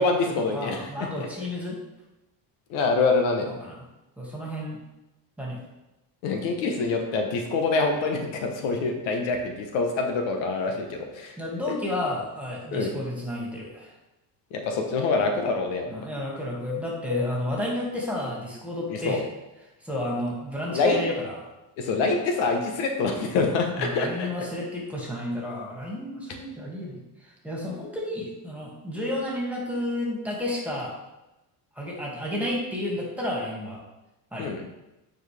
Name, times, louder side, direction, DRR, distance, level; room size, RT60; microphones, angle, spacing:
voice 1, 0.0-1.1 2.7-3.5 6.2-11.4 12.7-12.9 14.5-15.9 18.9-19.2 20.7-21.0 21.8-24.5 34.4-34.6, left 3 dB, 85° left, 4 dB, 1.2 m, -25 dB
voice 2, 0.5-1.8 3.5-3.8 4.2-4.8 5.4-5.6 11.4-13.9 15.9-19.2 19.8-21.5 23.8-30.9 31.8-33.8 34.3-34.5, left 1 dB, 5° right, -3 dB, 2.2 m, -31 dB
9.2 x 4.6 x 3.5 m, 0.98 s
cardioid pair, 110°, 43 cm